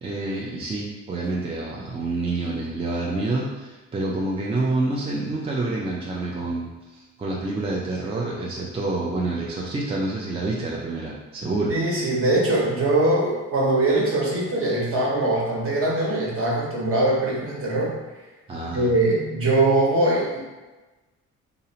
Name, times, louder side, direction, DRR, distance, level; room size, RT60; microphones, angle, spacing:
voice 1, 0.0-11.7 18.5-18.9, right 2 dB, 20° right, -4 dB, 0.4 m, -28 dB
voice 2, 11.7-17.9 18.7-20.4, right 2 dB, 50° right, -5 dB, 1.0 m, -22 dB
2.7 x 2.1 x 2.7 m, 1.2 s
cardioid pair, 90°, 30 cm